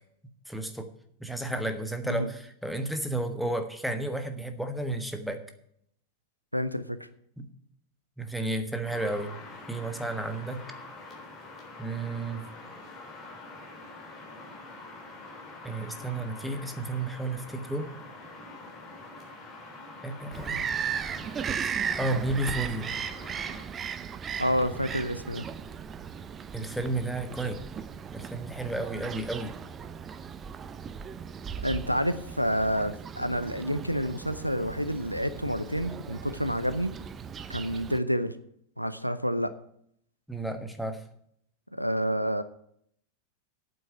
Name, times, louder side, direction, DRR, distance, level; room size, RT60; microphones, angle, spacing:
voice 1, 0.5-0.9 1.2-5.4 7.4-7.5 8.2-9.3 9.7-10.6 11.8-12.4 15.6-17.9 20.0-20.6 22.0-22.9 26.5-27.6 28.1-29.5 40.3-41.0, right 2 dB, ahead, 1.3 m, -32 dB
voice 2, 6.5-7.1 24.4-25.4 31.6-36.9 37.5-38.3 38.8-39.5 41.7-42.4, equal, 90° right, 0.6 m, -29 dB
sound 1, 8.8-23.6, left 2 dB, 25° left, 3.7 m, -45 dB
Bird vocalization bird call bird song, 20.3-38.0, right 7 dB, 25° right, 0.7 m, -37 dB
8.6 x 7.8 x 9.2 m
figure-of-eight pair, 90°, 0 cm